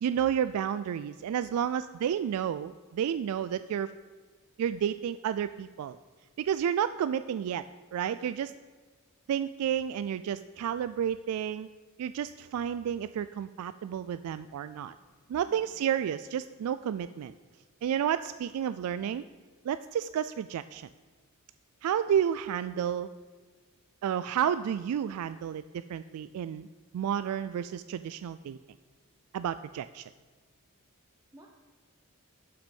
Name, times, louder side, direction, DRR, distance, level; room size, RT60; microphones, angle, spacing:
voice 1, 0.0-3.9 4.6-6.0 6.4-7.6 7.9-8.5 9.3-11.7 12.0-14.9 15.3-17.3 17.8-19.2 19.6-20.9 21.8-23.1 24.0-26.7 26.9-28.6 29.3-30.0, right 9 dB, 85° right, 14 dB, 0.3 m, -31 dB
voice 2, 1.4-1.8 14.9-15.1 15.5-15.8 31.3-31.5, right 1 dB, 15° right, 0 dB, 0.8 m, -56 dB
11.5 x 6.1 x 5.3 m, 1.5 s
head